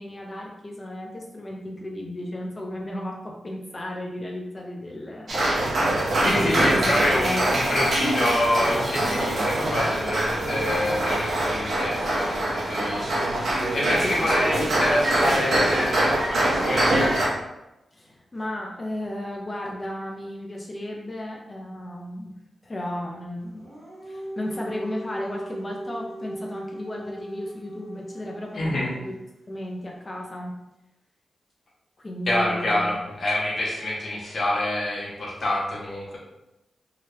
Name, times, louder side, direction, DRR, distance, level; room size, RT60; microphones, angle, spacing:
voice 1, 0.0-5.3 6.4-6.8 7.1-7.6 14.2-14.3 17.9-22.3 22.6-29.2 29.5-30.5 32.0-33.0, left 1 dB, 25° left, -1 dB, 0.6 m, -34 dB
sound 1, 5.3-17.3, right 1 dB, 65° right, 0.8 m, -24 dB
voice 2, 6.2-13.1 13.7-17.1 28.5-28.9 32.3-36.2, left 1 dB, 55° left, -5 dB, 0.9 m, -26 dB
Dog, 23.5-28.6, right 1 dB, 35° right, 1.5 m, -38 dB
2.8 x 2.4 x 3.3 m, 0.94 s
wide cardioid pair, 110°, 0 cm